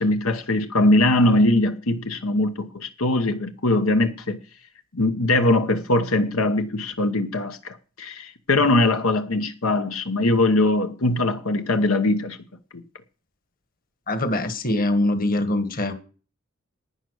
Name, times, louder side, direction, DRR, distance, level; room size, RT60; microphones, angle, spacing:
voice 1, 0.0-4.4 4.9-12.4 12.7-12.8, left 2 dB, 80° left, 1.0 m, -21 dB
voice 2, 14.1-15.9, left 1 dB, 40° left, 1.5 m, -23 dB
11.5 x 9.5 x 6.3 m
head